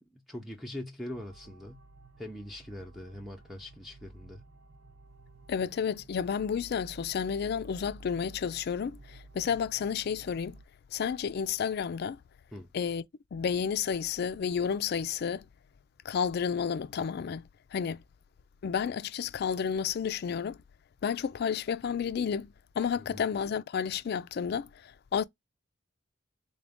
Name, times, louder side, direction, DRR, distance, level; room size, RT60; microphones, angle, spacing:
voice 1, 0.1-1.8 2.2-4.4 12.5-12.7 23.0-23.2, left 1 dB, ahead, 0.5 m, -42 dB
sound 1, 1.1-10.6, right 2 dB, 80° right, 0.7 m, -52 dB
voice 2, 5.5-10.6 10.9-12.2 12.7-13.0 13.3-15.4 16.0-18.0 18.6-20.6 21.0-25.2, left 7 dB, 55° left, 0.3 m, -31 dB
3.8 x 2.5 x 3.5 m
head